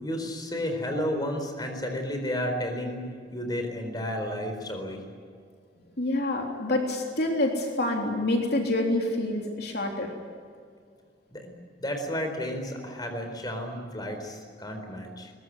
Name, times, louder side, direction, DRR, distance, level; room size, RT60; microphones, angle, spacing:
voice 1, 0.0-3.1 3.3-5.0 11.3-11.5 11.8-15.3, equal, 20° left, 5 dB, 4.2 m, -32 dB
voice 2, 6.0-10.1, left 1 dB, 60° left, 1 dB, 3.5 m, -27 dB
22.5 x 21.0 x 9.4 m, 2.1 s
head